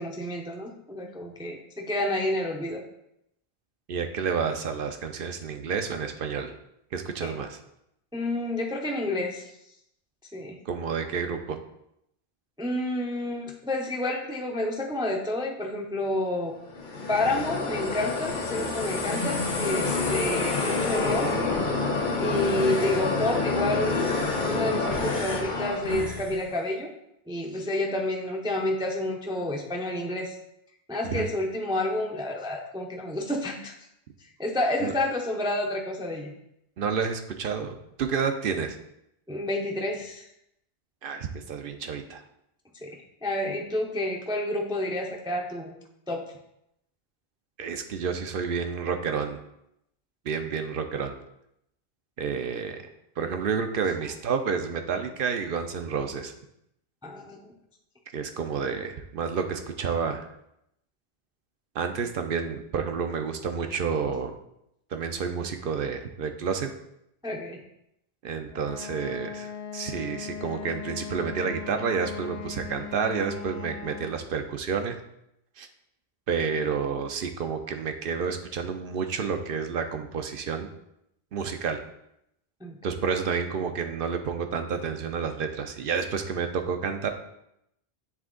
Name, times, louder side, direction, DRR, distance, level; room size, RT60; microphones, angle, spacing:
voice 1, 0.0-2.8 7.2-7.3 8.1-9.4 10.3-10.6 12.6-16.5 17.1-21.3 22.2-24.1 24.5-26.9 27.3-30.3 30.9-33.7 34.4-36.3 39.3-40.3 42.8-45.7 46.1-46.3 57.0-57.5 67.2-67.6 82.6-82.8, left 1 dB, 5° right, 1 dB, 0.5 m, -29 dB
voice 2, 3.9-6.5 6.9-7.6 10.7-11.6 31.0-31.3 34.8-34.9 36.8-38.8 41.0-42.2 47.6-49.4 50.2-51.2 52.2-52.8 53.2-56.3 58.1-60.3 61.7-64.4 64.9-66.7 68.2-75.0 75.6-75.7 76.3-80.7 81.3-81.8 82.8-87.1, right 6 dB, 65° right, 7 dB, 0.7 m, -30 dB
sound 1, 16.7-26.4, left 3 dB, 50° left, 1.0 m, -28 dB
Wind instrument woodwind instrument, 68.5-74.2, left 7 dB, 80° left, 0.8 m, -39 dB
7.3 x 3.4 x 3.8 m, 0.79 s
omnidirectional pair, 1.0 m